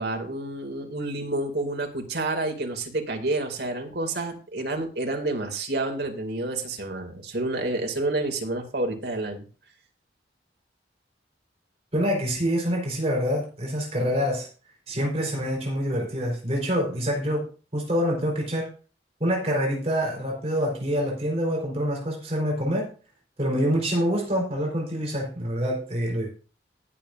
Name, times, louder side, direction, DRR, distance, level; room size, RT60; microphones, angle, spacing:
voice 1, 0.0-9.5, right 2 dB, 70° right, 3 dB, 2.5 m, -29 dB
voice 2, 11.9-14.5 14.9-18.7 19.2-22.9 23.4-26.3, equal, 35° right, -1 dB, 4.3 m, -26 dB
19.5 x 7.4 x 2.6 m, 0.36 s
head